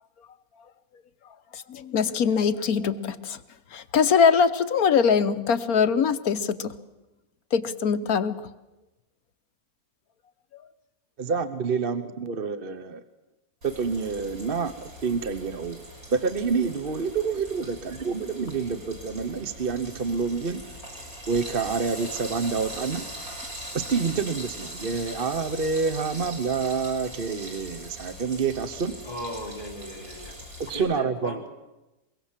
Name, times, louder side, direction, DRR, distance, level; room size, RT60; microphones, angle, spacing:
voice 1, 1.5-3.4 3.7-6.7 7.5-8.4, left 6 dB, 70° left, 10 dB, 1.4 m, -22 dB
voice 2, 11.2-13.0 13.6-15.8 16.1-20.6 21.3-23.0 23.7-29.0 30.6-31.4, right 5 dB, 40° right, 11 dB, 1.1 m, -28 dB
Frying (food), 13.6-30.8, equal, 60° right, 7.1 m, -41 dB
voice 3, 29.0-30.4 30.7-31.5, left 1 dB, 25° left, 0 dB, 4.3 m, -37 dB
23.5 x 23.0 x 7.5 m, 1.0 s
omnidirectional pair, 1.7 m